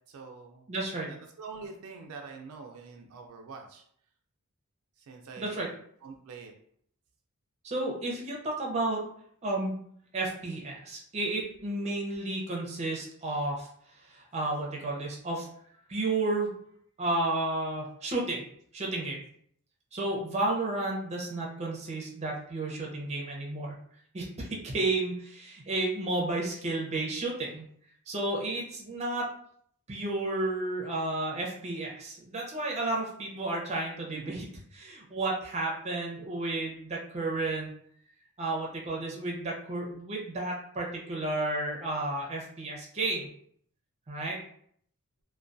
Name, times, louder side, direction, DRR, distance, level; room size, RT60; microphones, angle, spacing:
voice 1, 0.1-0.7 1.1-3.8 5.0-5.8 6.0-6.5 34.1-34.4, right 4 dB, 80° right, 3 dB, 0.4 m, -45 dB
voice 2, 0.7-1.1 5.4-5.7 7.6-9.0 9.4-9.7 10.1-13.7 14.1-15.5 15.9-16.5 17.0-18.4 18.7-19.2 19.9-23.8 24.1-27.6 28.1-29.2 29.9-34.5 34.7-37.7 38.4-43.3 44.1-44.4, right 2 dB, 30° right, -1 dB, 0.6 m, -32 dB
2.2 x 2.2 x 2.5 m, 0.64 s
head